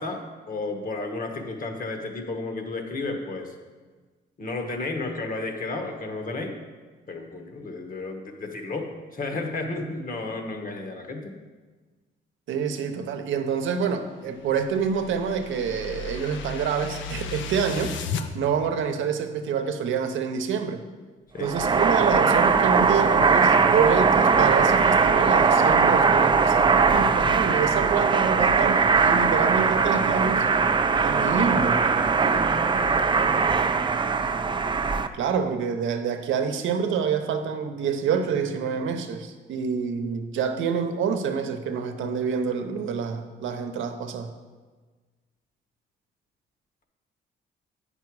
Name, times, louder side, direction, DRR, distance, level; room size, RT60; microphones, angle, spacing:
voice 1, 0.0-3.5 4.4-6.6 7.1-11.3 21.3-21.5 32.2-33.7, left 3 dB, 45° left, 4 dB, 1.3 m, -33 dB
voice 2, 12.5-18.0 18.3-20.8 21.4-30.5 31.0-31.8 35.1-44.3, right 6 dB, 75° right, 7 dB, 0.8 m, -27 dB
sound 1, 14.2-18.3, left 6 dB, 75° left, 0.6 m, -35 dB
sound 2, 21.4-35.1, right 5 dB, 25° right, 0.4 m, -20 dB
8.3 x 5.6 x 4.7 m, 1.3 s
cardioid pair, 90°, 20 cm